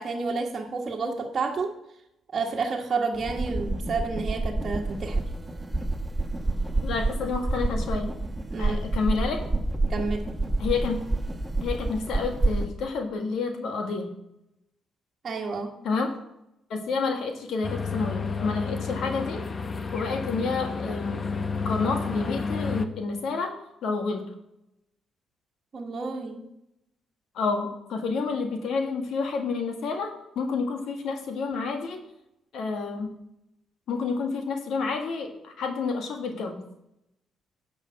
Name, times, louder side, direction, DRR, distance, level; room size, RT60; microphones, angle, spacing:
voice 1, 0.0-1.8 2.3-5.2 8.5-8.8 9.9-10.3 15.2-15.8 25.7-26.4, right 4 dB, 40° right, 1.4 m, -30 dB
sound 1, 3.1-12.7, right 2 dB, 10° right, 1.2 m, -28 dB
voice 2, 6.8-8.1 8.6-9.4 10.6-11.0 11.6-14.1 15.8-16.1 16.7-19.4 19.9-21.3 21.6-23.5 23.8-24.2 27.3-32.0 32.5-33.1 33.9-36.6, left 4 dB, 75° left, 1.7 m, -29 dB
sound 2, 17.6-22.8, left 4 dB, 35° left, 1.0 m, -31 dB
10.5 x 5.5 x 7.3 m
cardioid pair, 90°, 0 cm